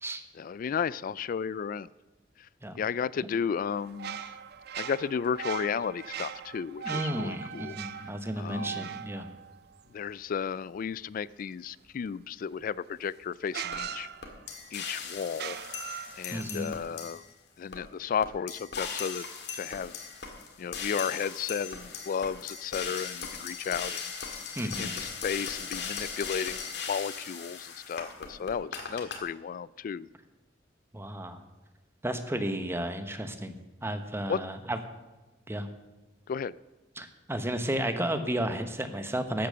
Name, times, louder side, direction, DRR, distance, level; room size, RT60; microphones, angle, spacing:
voice 1, 0.4-1.9 2.8-4.2 4.8-7.8 8.4-8.9 9.9-14.1 14.7-15.6 16.2-17.2 17.6-19.3 19.5-19.9 20.6-24.4 24.8-30.1 34.3-34.4 36.3-36.5, left 7 dB, 50° left, 21 dB, 0.3 m, -33 dB
sound 1, 3.7-10.3 12.6-12.7 13.5-14.7 15.3-16.5, right 8 dB, 60° right, 0.5 m, -40 dB
voice 2, 6.8-9.3 16.3-16.7 24.5-25.0 30.9-31.4 32.0-33.6 33.8-34.8 35.5-35.7 37.0-39.5, right 1 dB, 15° right, 8 dB, 1.0 m, -33 dB
sound 2, 13.7-13.8 14.2-17.3 17.7-17.8 18.2-29.2, left 6 dB, 65° left, 1.8 m, -38 dB
13.0 x 8.6 x 6.7 m, 1.1 s
head